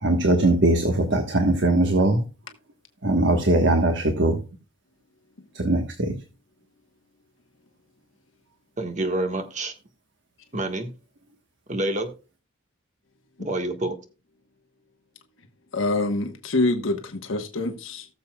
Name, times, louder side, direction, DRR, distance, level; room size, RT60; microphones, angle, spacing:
voice 1, 0.0-2.2 3.0-4.4 5.5-6.1, right 2 dB, 60° right, 1.3 m, -20 dB
voice 2, 8.8-9.7 10.5-10.9 11.7-12.1 13.4-13.9, right 1 dB, 35° right, 1.5 m, -27 dB
voice 3, 15.7-18.1, left 2 dB, 75° left, 1.2 m, -25 dB
19.0 x 7.1 x 2.3 m
head